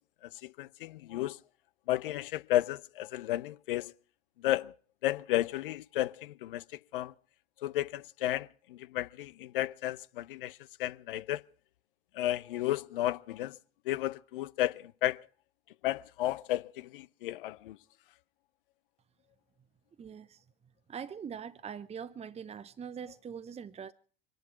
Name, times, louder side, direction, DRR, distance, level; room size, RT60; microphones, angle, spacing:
voice 1, 0.2-1.4 1.9-3.9 4.4-4.7 5.0-6.6 6.9-7.1 7.6-11.4 12.1-13.6 13.8-15.3 15.8-17.8, left 14 dB, 65° left, 0.7 m, -33 dB
voice 2, 20.0-20.4 20.9-23.9, right 7 dB, 20° right, 0.8 m, -42 dB
25.0 x 11.0 x 4.6 m
figure-of-eight pair, 65°, 29 cm